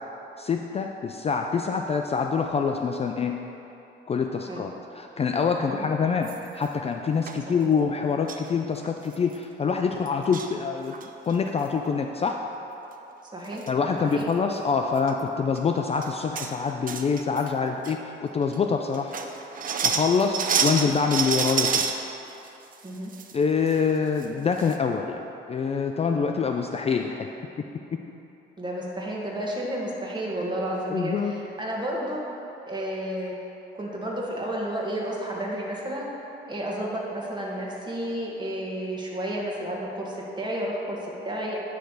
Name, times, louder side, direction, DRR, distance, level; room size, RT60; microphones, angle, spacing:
voice 1, 0.4-3.4 4.1-11.0 11.2-12.4 13.7-19.1 19.8-21.9 23.3-27.3 27.6-27.7 27.9-28.0 30.9-31.3, left 5 dB, 30° left, 4 dB, 0.4 m, -25 dB
sound 1, 6.2-6.7 7.3-7.4 8.3-8.5 8.8-8.9 9.1-9.4 10.1-10.5 10.9-11.3 13.1-13.2 13.5-13.7 14.1-14.2 15.0-15.1 15.6-15.7 16.0-16.5 16.9-17.5 17.8-17.9 18.5-18.6 18.9-22.0 22.5-23.3 23.7-23.8 24.2-24.3 24.6-24.8, right 6 dB, 45° right, 0.6 m, -28 dB
voice 2, 13.3-13.6 14.0-14.3 20.3-20.4 22.8-23.1 28.6-32.2 32.7-36.1 36.4-41.6, right 1 dB, 20° right, -3 dB, 1.7 m, -31 dB
10.0 x 3.4 x 6.3 m, 3.0 s
cardioid pair, 90°, 20 cm